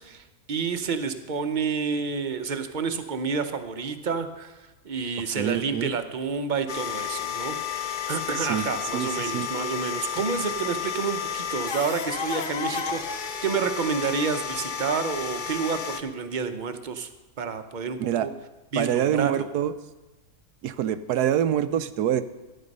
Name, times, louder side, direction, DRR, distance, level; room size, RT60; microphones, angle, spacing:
voice 1, 0.0-7.6 7.8-17.1 17.4-18.3 18.7-19.5, right 5 dB, 40° right, 8 dB, 0.7 m, -29 dB
voice 2, 5.4-5.9 8.4-8.7 8.9-9.5 18.0-18.3 18.8-19.7 20.6-22.2, right 10 dB, 85° right, 11 dB, 1.2 m, -25 dB
sound 1, 6.7-16.0, left 7 dB, 45° left, 0.6 m, -31 dB
13.5 x 10.0 x 5.4 m, 1.1 s
omnidirectional pair, 1.7 m